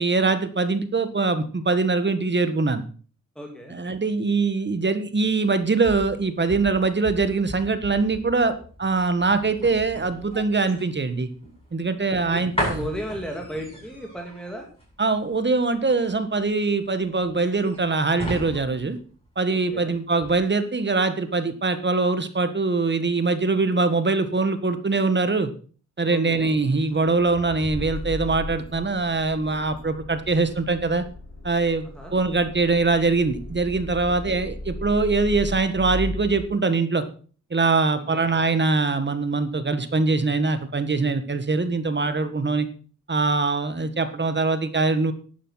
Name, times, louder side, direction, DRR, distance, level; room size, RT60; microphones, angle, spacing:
voice 1, 0.0-2.8 3.7-11.3 11.7-12.9 15.0-19.0 19.3-25.5 26.0-31.0 31.4-31.8 32.1-37.0 37.5-42.7 43.1-45.1, right 3 dB, 35° right, 10 dB, 1.7 m, -23 dB
voice 2, 3.4-3.8 12.2-14.7 19.5-19.9 26.1-26.5 31.9-32.1 34.0-34.4 37.9-38.2, equal, ahead, 2 dB, 2.7 m, -35 dB
sound 1, 5.5-19.8 20.2-20.4, equal, 20° left, 7.9 m, -36 dB
Accelerating revving vroom, 26.8-36.4, left 1 dB, 60° left, 5.0 m, -36 dB
11.0 x 11.0 x 5.8 m, 0.40 s
wide cardioid pair, 115°, 31 cm